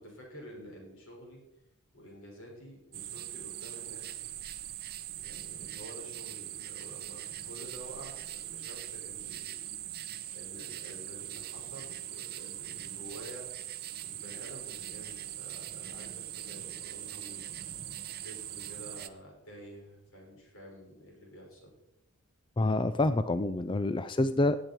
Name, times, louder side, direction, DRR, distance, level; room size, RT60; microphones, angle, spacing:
voice 1, 0.0-1.4 1.9-4.2 5.2-8.2 8.5-9.6 10.3-13.5 14.0-17.4 18.2-21.7, equal, 85° left, -1 dB, 5.9 m, -49 dB
sound 1, 2.9-19.1, right 12 dB, 45° right, 0.7 m, -41 dB
voice 2, 22.6-24.6, left 2 dB, 20° left, 12 dB, 0.4 m, -27 dB
17.5 x 8.9 x 4.5 m, 0.85 s
head